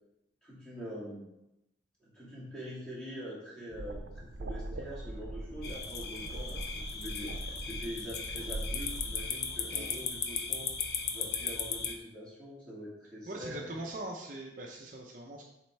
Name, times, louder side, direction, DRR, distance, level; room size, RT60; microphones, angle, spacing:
voice 1, 0.4-1.3 2.0-10.7 11.1-13.7, equal, 5° left, -8 dB, 2.2 m, -44 dB
sound 1, 3.7-9.3, right 2 dB, 85° right, 0.6 m, -41 dB
sound 2, 5.6-11.9, left 6 dB, 55° left, 0.6 m, -37 dB
voice 2, 13.3-15.4, right 1 dB, 45° right, 0 dB, 0.6 m, -41 dB
7.3 x 4.3 x 3.3 m, 0.89 s
head